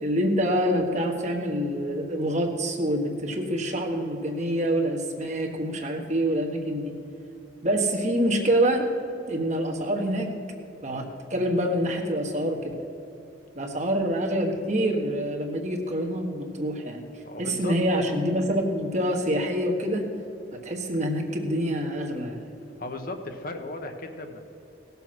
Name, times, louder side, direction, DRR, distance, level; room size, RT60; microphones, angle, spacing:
voice 1, 0.0-6.9 7.6-8.9 9.3-10.3 10.8-12.6 13.5-17.0 17.4-20.0 20.5-22.4, equal, 40° right, 2 dB, 1.4 m, -26 dB
voice 2, 17.2-17.7 22.8-24.5, left 2 dB, 50° left, 5 dB, 1.0 m, -36 dB
17.5 x 7.0 x 6.0 m, 2.8 s
head